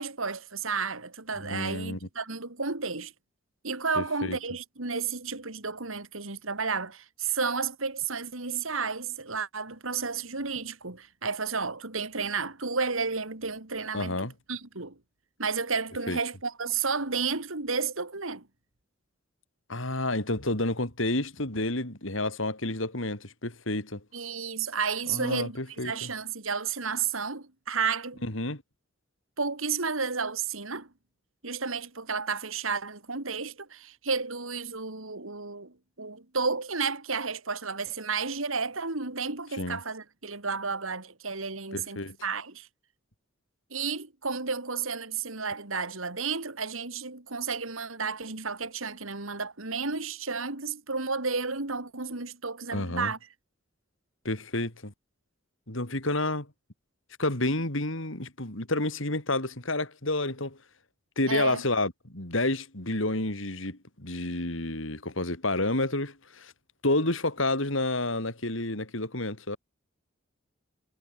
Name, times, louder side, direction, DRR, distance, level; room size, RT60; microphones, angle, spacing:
voice 1, 0.0-3.1 3.6-15.0 15.4-18.5 24.1-28.2 29.4-30.9 31.4-42.7 43.7-53.2 61.3-61.6, right 5 dB, 85° right, 2.9 m, -32 dB
voice 2, 1.4-2.1 4.0-4.4 13.9-14.3 16.1-16.2 19.7-24.0 25.1-26.1 28.2-28.6 39.6-39.8 41.7-42.2 52.7-53.1 54.2-54.9 55.7-56.5 57.2-60.6 61.2-66.5 66.8-69.6, left 2 dB, 75° left, 4.3 m, -30 dB
head